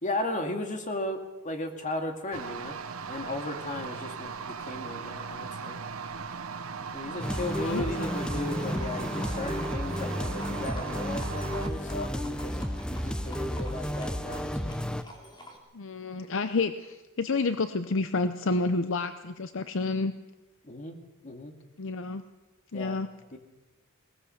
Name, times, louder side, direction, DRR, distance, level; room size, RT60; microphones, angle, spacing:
voice 1, 0.0-2.7 3.1-5.8 6.9-14.8 20.6-21.0 21.2-21.5 22.7-23.0 23.3-23.4, left 1 dB, 35° left, 4 dB, 2.3 m, -36 dB
sound 1, 2.3-11.7, right 5 dB, 80° right, 1.0 m, -38 dB
Livestock farm animals working animals, 6.9-15.6, equal, 20° left, 3.0 m, -48 dB
sound 2, 7.2-15.0, equal, 5° left, 0.7 m, -32 dB
voice 2, 7.6-8.1 15.7-20.1 21.8-22.2 22.7-23.1, left 3 dB, 60° left, 10 dB, 0.7 m, -30 dB
20.5 x 19.0 x 6.6 m, 1.1 s
head